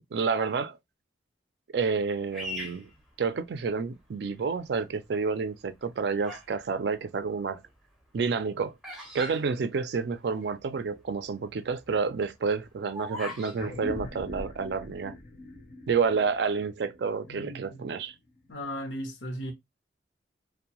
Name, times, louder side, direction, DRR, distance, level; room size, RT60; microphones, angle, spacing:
voice 1, 0.1-0.8 1.7-2.9 3.2-7.6 8.1-8.7 9.1-15.2 15.9-18.1, right 5 dB, 65° right, 0.4 m, -29 dB
Bird vocalization bird call bird song, 2.3-3.8 4.5-4.9 5.7-6.6 6.9-10.3 10.6-10.7 10.9-11.2 11.7-13.6, left 1 dB, 5° right, 0.5 m, -41 dB
sound 1, 13.6-18.4, left 1 dB, 50° left, 0.6 m, -42 dB
voice 2, 17.3-17.8 18.5-19.5, equal, 90° left, 0.7 m, -36 dB
2.6 x 2.1 x 2.9 m
head